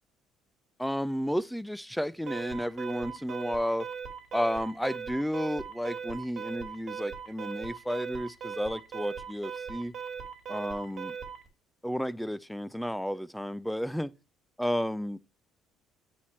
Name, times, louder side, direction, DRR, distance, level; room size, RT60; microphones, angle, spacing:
voice 1, 0.8-3.9 4.3-9.9 10.5-11.2 11.8-14.1 14.6-15.2, equal, ahead, 0.3 m, -32 dB
Alarm, 2.3-11.5, right 7 dB, 45° right, 1.6 m, -39 dB
8.5 x 4.3 x 3.1 m
cardioid pair, 130°, 0 cm